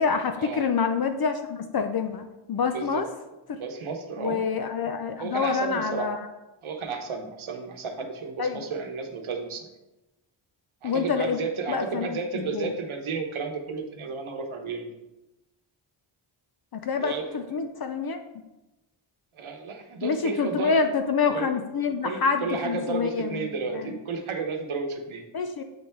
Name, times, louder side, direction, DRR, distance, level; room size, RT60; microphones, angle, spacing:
voice 1, 0.0-3.1 3.5-3.6 4.2-6.3 8.4-8.6 10.8-11.4 11.7-12.2 12.5-12.7 16.7-18.2 20.0-23.5 23.7-23.9 25.3-25.6, left 5 dB, 50° left, 7 dB, 0.5 m, -27 dB
voice 2, 2.6-3.0 3.5-4.4 5.2-6.1 6.6-9.7 10.8-14.9 17.0-17.6 19.3-20.8 21.3-21.5 22.0-25.2, right 4 dB, 75° right, 4 dB, 1.0 m, -32 dB
7.8 x 3.4 x 4.3 m, 1.0 s
wide cardioid pair, 75°, 49 cm